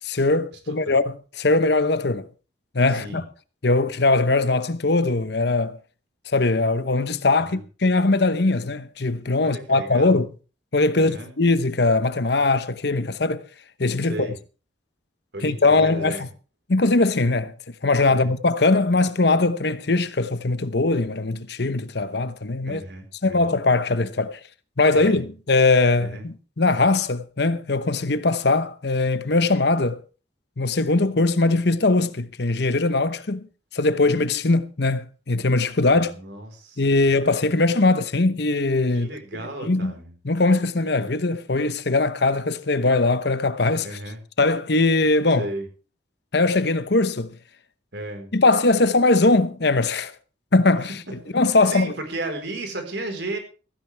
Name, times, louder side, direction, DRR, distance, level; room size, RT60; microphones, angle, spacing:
voice 1, 0.0-2.3 2.7-3.3 3.6-5.8 6.3-10.3 10.7-13.4 13.8-14.3 15.4-16.3 16.7-17.5 17.8-22.8 23.2-24.4 24.8-30.0 30.6-33.5 33.7-36.1 36.8-39.1 39.6-39.9 40.2-43.9 44.4-45.5 46.3-47.4 48.3-50.1 50.5-50.9 51.3-51.9, left 3 dB, 60° left, 0.9 m, -21 dB
voice 2, 2.9-3.2 7.5-7.6 9.4-10.2 10.9-11.3 14.0-14.4 15.3-16.2 18.1-18.3 22.7-23.5 24.9-25.2 26.0-26.3 35.9-37.1 38.9-40.1 43.8-44.2 45.4-45.7 47.9-48.3 51.2-51.3 51.7-53.4, right 2 dB, 65° right, 4.5 m, -34 dB
16.0 x 16.0 x 3.5 m
head